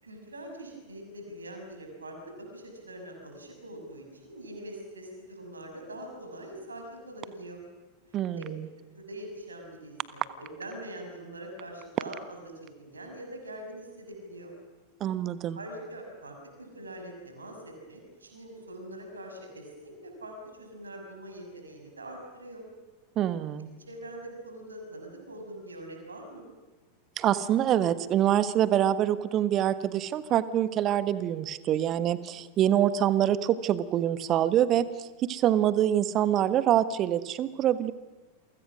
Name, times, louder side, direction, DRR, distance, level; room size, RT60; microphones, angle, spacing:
voice 1, 0.0-7.6 8.4-8.5 8.9-12.5 12.8-14.5 15.5-22.6 23.9-26.4, right 1 dB, 75° right, 3 dB, 6.5 m, -43 dB
voice 2, 15.0-15.6 23.2-23.7 27.2-37.9, right 11 dB, 30° right, 14 dB, 1.3 m, -25 dB
29.0 x 24.0 x 6.3 m, 1.2 s
figure-of-eight pair, 90°, 0 cm